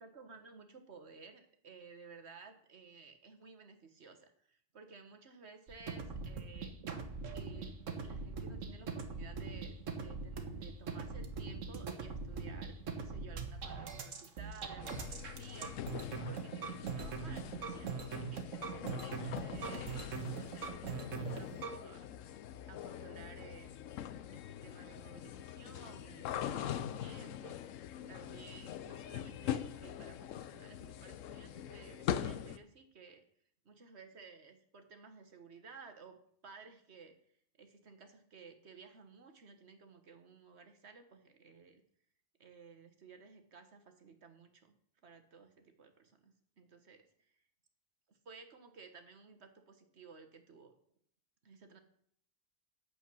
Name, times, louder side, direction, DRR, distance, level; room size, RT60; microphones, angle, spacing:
voice 1, 0.0-6.7 7.3-7.7 8.0-15.7 16.2-22.1 22.7-23.8 24.3-27.6 28.1-33.2 33.6-37.1 37.6-41.8 42.4-47.3 48.1-50.7 51.4-51.8, right 5 dB, 55° right, 6 dB, 1.5 m, -56 dB
sound 1, 5.7-21.8, right 5 dB, 75° right, 1.5 m, -42 dB
sound 2, 14.8-32.6, left 10 dB, 75° left, 1.0 m, -43 dB
8.6 x 8.0 x 6.1 m, 0.65 s
omnidirectional pair, 1.4 m